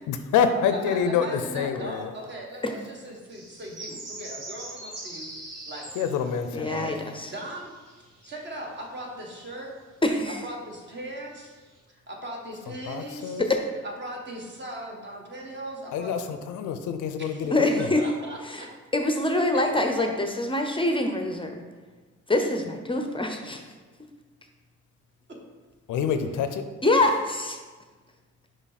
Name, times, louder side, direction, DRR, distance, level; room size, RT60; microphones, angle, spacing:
voice 1, 0.1-2.1 5.9-6.9 12.8-13.4 15.9-17.9 25.9-26.6, left 7 dB, 85° left, 9 dB, 0.6 m, -27 dB
voice 2, 0.7-5.3 5.7-5.9 6.6-7.0 7.3-7.7 8.2-9.7 10.4-11.5 11.9-13.4 13.8-16.5 17.2-18.7 19.5-19.8 25.3-25.4, right 1 dB, 35° right, 0 dB, 1.5 m, -38 dB
sound 1, 3.3-9.1 9.7-9.8 10.7-10.8 11.2-11.8, right 2 dB, 55° right, 2.0 m, -43 dB
voice 3, 6.5-7.3 10.0-10.4 13.4-13.6 17.5-18.0 18.4-18.7 18.9-21.6 22.3-23.6 26.8-27.6, left 2 dB, 15° left, 4 dB, 0.6 m, -25 dB
6.1 x 5.0 x 4.1 m, 1.4 s
cardioid pair, 90°, 30 cm